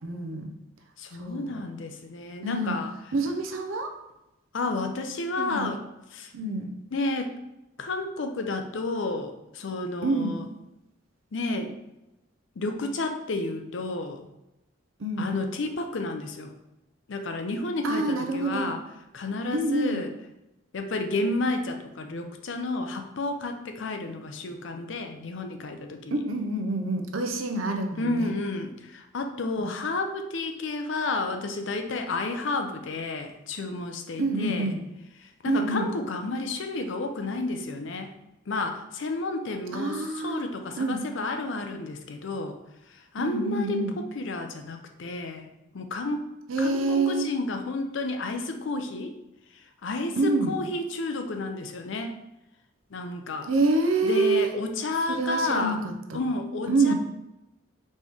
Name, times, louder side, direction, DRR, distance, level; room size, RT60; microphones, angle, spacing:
voice 1, 0.0-0.5 1.2-1.5 2.4-2.8 3.1-3.9 5.4-5.7 6.3-6.7 10.0-10.4 15.0-15.4 17.8-18.7 19.5-20.0 26.1-28.3 29.6-29.7 34.2-34.8 35.4-35.9 39.7-40.4 40.7-41.0 43.2-44.0 46.5-47.3 50.2-50.5 53.5-54.5 55.1-56.2 56.7-56.9, right 2 dB, 80° right, 5 dB, 0.6 m, -27 dB
voice 2, 1.0-2.9 4.5-5.8 6.1-6.3 6.9-7.3 7.8-10.5 11.3-11.8 12.6-14.2 15.2-16.5 17.1-18.8 19.1-20.1 20.7-26.2 28.0-34.7 35.2-38.1 38.5-42.6 42.9-45.5 45.7-46.3 46.6-49.2 49.8-52.2 52.9-53.5 54.0-55.8 56.1-56.9, left 2 dB, 65° left, 6 dB, 0.5 m, -31 dB
4.3 x 3.0 x 3.4 m, 0.92 s
head